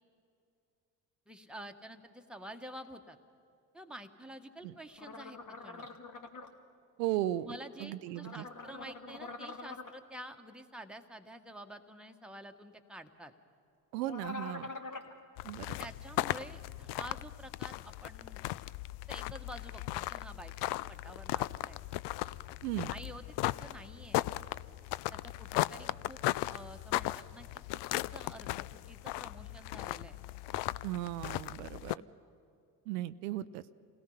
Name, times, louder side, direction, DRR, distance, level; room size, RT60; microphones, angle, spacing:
voice 1, 1.3-3.2 3.7-5.9 7.4-13.3 15.8-18.4 19.1-21.8 22.7-24.3 25.1-26.2 26.5-30.2, right 1 dB, ahead, 4 dB, 1.4 m, -49 dB
sound 1, 5.0-6.5 8.2-9.9 14.0-15.1, left 3 dB, 40° left, 2.2 m, -44 dB
voice 2, 7.0-8.4 13.9-14.7 15.4-15.8 22.6-22.9 30.8-31.9 32.9-33.6, right 14 dB, 80° right, 13 dB, 0.6 m, -36 dB
sound 2, 15.4-31.9, left 17 dB, 60° left, 0.5 m, -37 dB
27.0 x 17.5 x 5.7 m, 2.5 s
hypercardioid pair, 50°, 48 cm